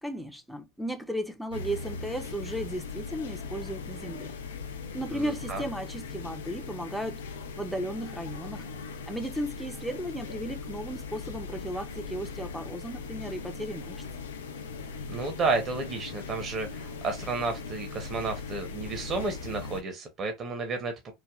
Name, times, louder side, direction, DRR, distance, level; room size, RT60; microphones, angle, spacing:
voice 1, 0.0-4.4 4.9-7.2 7.6-8.7 9.1-14.0, equal, ahead, 0.5 m, -35 dB
sound 1, 1.5-19.8, left 4 dB, 90° left, 0.4 m, -39 dB
voice 2, 15.1-21.1, right 3 dB, 35° right, 0.8 m, -31 dB
3.3 x 2.1 x 2.3 m
hypercardioid pair, 95°, 0 cm